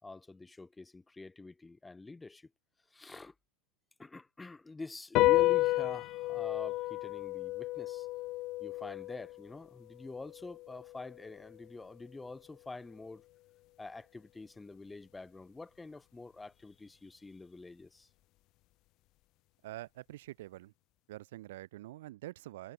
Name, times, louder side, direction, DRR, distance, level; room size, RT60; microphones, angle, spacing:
voice 1, 0.0-2.5 2.9-3.3 4.0-8.1 8.6-13.2 13.8-18.1, left 3 dB, 10° left, 3.9 m, -46 dB
sound 1, 5.1-11.9, left 19 dB, 40° left, 0.4 m, -32 dB
voice 2, 19.6-20.7 21.1-22.7, right 16 dB, 60° right, 7.0 m, -46 dB
hypercardioid pair, 115°, 0 cm